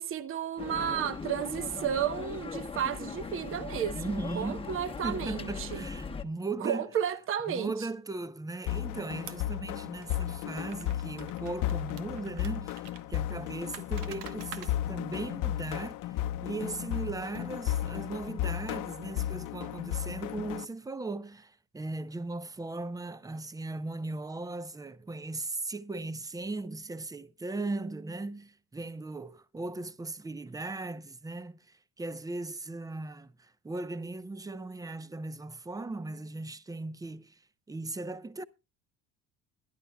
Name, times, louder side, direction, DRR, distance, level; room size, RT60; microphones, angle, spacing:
voice 1, 0.0-5.8 6.6-7.7, right 9 dB, 40° right, 1.0 m, -32 dB
sound 1, 0.6-6.2, left 5 dB, 15° left, 1.0 m, -39 dB
voice 2, 3.9-4.7 5.0-6.9 7.5-37.4 37.7-38.4, right 2 dB, 10° right, 0.6 m, -38 dB
sound 2, 8.7-20.6, left 12 dB, 70° left, 0.9 m, -34 dB
sound 3, 9.3-9.6 10.0-10.1 10.7-13.0 13.7-14.7, right 11 dB, 85° right, 1.2 m, -47 dB
21.5 x 11.0 x 2.3 m
cardioid pair, 115°, 32 cm